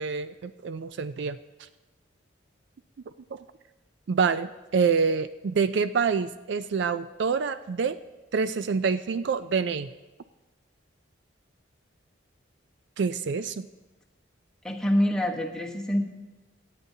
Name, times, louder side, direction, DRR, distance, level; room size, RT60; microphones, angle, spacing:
voice 1, 0.0-1.4 3.3-3.4 4.1-8.0 8.3-9.9 13.0-13.7, right 5 dB, 60° right, 12 dB, 0.4 m, -26 dB
voice 2, 14.6-16.0, equal, 5° left, -2 dB, 1.2 m, -25 dB
23.5 x 9.2 x 2.8 m, 1.1 s
head